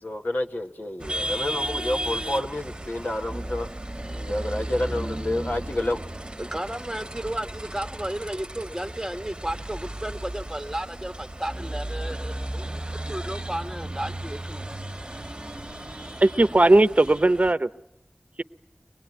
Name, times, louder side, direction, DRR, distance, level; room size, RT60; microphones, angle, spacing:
voice 1, 0.0-3.7 4.0-6.0, left 1 dB, 65° left, 1.5 m, -29 dB
sound 1, 1.0-17.5, right 1 dB, 25° right, 1.4 m, -34 dB
voice 2, 6.4-14.6, right 1 dB, 10° right, 1.5 m, -33 dB
voice 3, 16.2-17.7, right 2 dB, 45° right, 0.9 m, -18 dB
24.5 x 20.5 x 9.5 m
wide cardioid pair, 45°, 4 cm